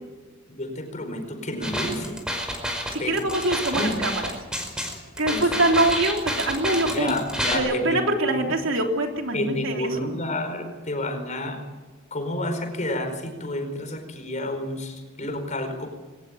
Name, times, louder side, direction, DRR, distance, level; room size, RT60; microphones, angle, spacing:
voice 1, 0.5-2.2 3.0-3.3 3.7-4.0 5.3-5.5 6.8-8.5 9.3-11.6 12.1-15.9, left 1 dB, 40° left, 6 dB, 4.8 m, -30 dB
sound 1, 1.6-7.6, equal, 5° right, 5.1 m, -29 dB
voice 2, 2.9-4.2 5.2-7.2 7.5-9.7, right 2 dB, 80° right, 3 dB, 3.4 m, -24 dB
22.0 x 19.0 x 8.8 m, 1.2 s
head